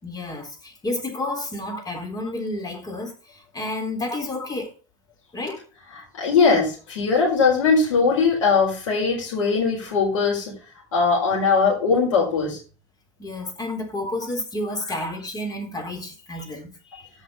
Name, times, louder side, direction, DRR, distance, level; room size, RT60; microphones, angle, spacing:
voice 1, 0.0-4.7 5.3-5.6 13.2-16.7, left 2 dB, 25° left, 3.7 m, -30 dB
voice 2, 5.9-10.5 10.9-12.6 16.9-17.1, left 5 dB, 80° left, 4.6 m, -20 dB
8.1 x 6.0 x 6.8 m
hypercardioid pair, 90°, 16 cm